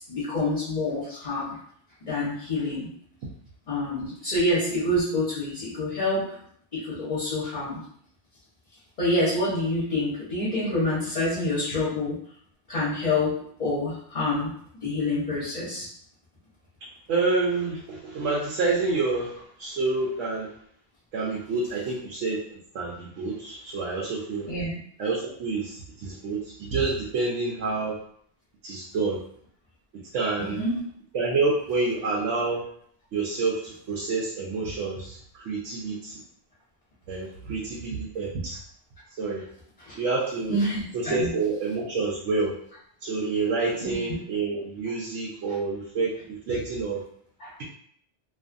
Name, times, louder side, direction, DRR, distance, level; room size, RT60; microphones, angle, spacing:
voice 1, 0.0-1.6 2.0-2.9 3.7-6.4 6.7-7.8 9.0-12.2 12.7-14.5 14.8-15.9 24.5-24.7 30.4-30.8 39.8-40.0 40.5-41.3 43.8-43.9 47.4-47.5, left 1 dB, 40° left, -9 dB, 1.0 m, -27 dB
voice 2, 17.1-20.5 21.1-22.4 22.7-24.5 25.0-28.0 28.6-29.2 30.1-30.6 31.1-32.6 33.1-36.2 37.1-38.6 39.2-39.4 39.9-40.5 40.9-42.6 43.0-47.0, right 3 dB, 80° right, -4 dB, 0.9 m, -28 dB
2.5 x 2.4 x 2.5 m, 0.64 s
omnidirectional pair, 1.2 m